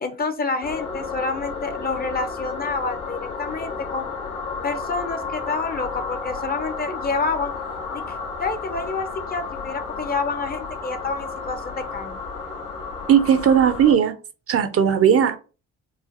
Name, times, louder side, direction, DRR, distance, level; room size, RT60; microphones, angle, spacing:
voice 1, 0.0-4.1 4.6-7.5 7.9-8.0 8.4-12.2, left 4 dB, 30° left, 0.7 m, -28 dB
sound 1, 0.6-13.9, left 4 dB, 90° left, 1.8 m, -32 dB
voice 2, 13.1-14.1 14.5-15.4, right 8 dB, 50° right, 0.6 m, -17 dB
4.8 x 2.5 x 2.8 m
cardioid pair, 90°, 30 cm